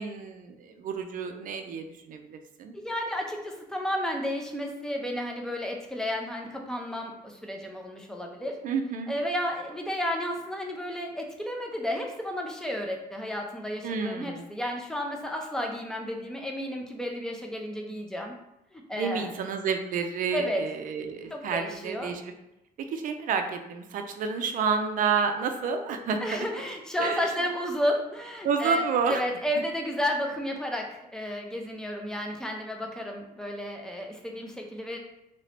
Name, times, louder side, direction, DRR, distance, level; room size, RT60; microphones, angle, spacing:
voice 1, 0.0-2.7 8.6-9.2 13.8-14.5 18.9-22.3 22.9-26.5 27.0-27.3 28.4-29.2, right 5 dB, 55° right, 6 dB, 0.5 m, -30 dB
voice 2, 2.7-8.6 9.1-18.3 18.7-19.3 20.3-20.7 21.3-22.1 26.2-35.0, equal, 5° left, 1 dB, 0.6 m, -32 dB
2.9 x 2.8 x 3.2 m, 0.86 s
cardioid pair, 110°, 17 cm